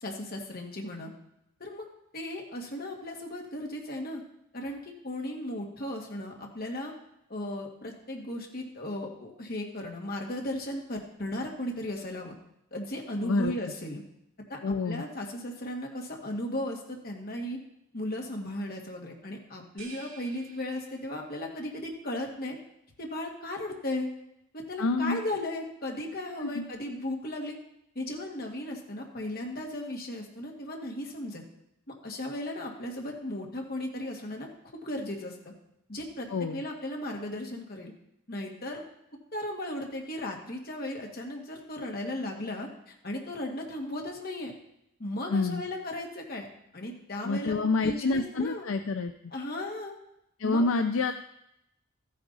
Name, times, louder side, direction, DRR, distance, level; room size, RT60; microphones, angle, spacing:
voice 1, 0.0-1.1 1.6-1.8 2.1-4.2 4.5-6.9 7.3-12.3 12.7-14.0 14.5-17.6 17.9-22.6 23.0-24.1 24.5-27.6 28.0-31.4 31.9-35.4 35.9-37.9 38.3-38.8 39.3-44.5 45.0-46.5 46.7-47.5 47.8-48.7 49.3-49.9 50.4-50.6, left 1 dB, 45° left, 0 dB, 1.9 m, -36 dB
voice 2, 13.2-13.6 14.6-15.0 24.8-25.2 26.4-26.6 36.3-36.6 45.3-45.6 47.2-49.1 50.4-51.1, left 3 dB, 65° left, 8 dB, 0.5 m, -28 dB
sound 1, 19.8-21.5, right 6 dB, 65° right, 2.7 m, -50 dB
14.0 x 9.3 x 4.1 m, 0.81 s
head